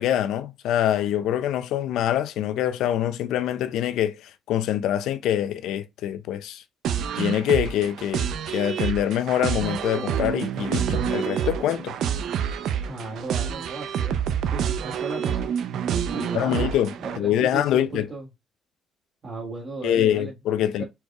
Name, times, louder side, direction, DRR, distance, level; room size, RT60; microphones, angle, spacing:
voice 1, 0.0-6.6 7.1-12.0 16.3-18.1 19.8-20.8, left 11 dB, 85° left, 0.5 m, -25 dB
sound 1, 6.8-17.2, right 8 dB, 80° right, 0.6 m, -28 dB
voice 2, 12.8-15.5 16.1-16.7 17.0-18.3 19.2-20.3 20.6-20.8, right 2 dB, 45° right, 1.7 m, -35 dB
4.6 x 4.4 x 2.4 m
cardioid pair, 90°, 0 cm